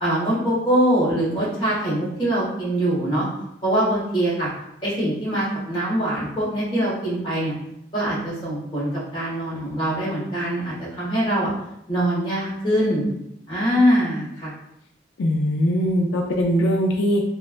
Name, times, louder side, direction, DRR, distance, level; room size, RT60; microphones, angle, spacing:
voice 1, 0.0-3.2 3.6-4.5 4.8-7.5 7.9-8.9 9.1-11.5 11.9-13.1 13.5-14.5, right 1 dB, 25° left, -8 dB, 1.3 m, -23 dB
voice 2, 15.2-17.2, equal, 90° left, 1 dB, 0.4 m, -21 dB
3.2 x 2.3 x 2.4 m, 0.80 s
head